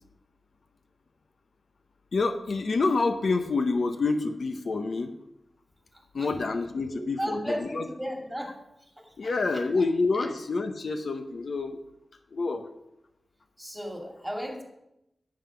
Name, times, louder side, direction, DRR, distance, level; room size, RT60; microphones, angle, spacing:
voice 1, 2.1-5.2 6.1-7.9 9.2-11.8 12.3-12.7, left 3 dB, 65° left, 7 dB, 0.7 m, -27 dB
voice 2, 5.9-6.4 6.8-8.6 9.1-9.6 10.1-10.3 13.6-14.6, equal, 5° right, 2 dB, 2.3 m, -35 dB
11.5 x 7.6 x 5.1 m, 0.87 s
wide cardioid pair, 80°, 0 cm